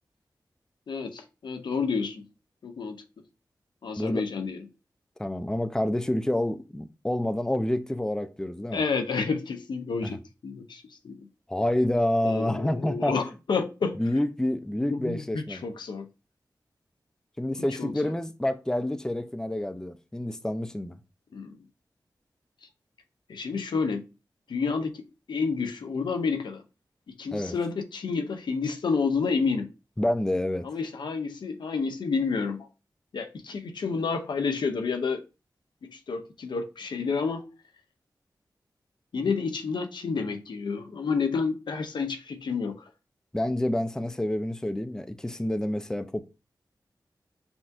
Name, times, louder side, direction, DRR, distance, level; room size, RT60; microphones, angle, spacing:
voice 1, 0.9-2.2 2.6-3.0 3.8-4.6 8.7-11.3 12.2-14.0 14.9-16.1 17.8-18.1 21.3-21.6 23.3-24.0 24.5-26.6 27.1-29.7 30.6-32.7 33.1-35.2 35.8-37.5 39.1-42.8, left 5 dB, 80° left, 0.6 m, -30 dB
voice 2, 5.2-8.8 10.0-10.2 11.5-13.2 14.0-15.6 17.4-21.0 27.3-27.6 30.0-30.7 43.3-46.2, left 1 dB, 10° left, 0.4 m, -28 dB
5.9 x 2.6 x 2.5 m
cardioid pair, 60°, 8 cm